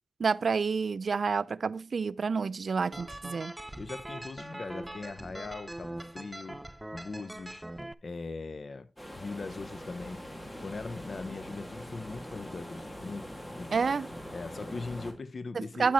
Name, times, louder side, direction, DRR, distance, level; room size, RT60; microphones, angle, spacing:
voice 1, 0.2-3.5 13.7-14.1 15.5-15.9, right 5 dB, 70° right, 0.4 m, -29 dB
sound 1, 2.9-7.9, right 1 dB, 15° right, 0.5 m, -42 dB
voice 2, 3.8-7.7 8.0-8.9 9.1-10.3 10.6-13.7 14.3-15.9, left 3 dB, 60° left, 0.8 m, -40 dB
sound 2, 9.0-15.1, equal, 20° left, 2.2 m, -43 dB
9.2 x 8.5 x 3.1 m
wide cardioid pair, 70°, 0 cm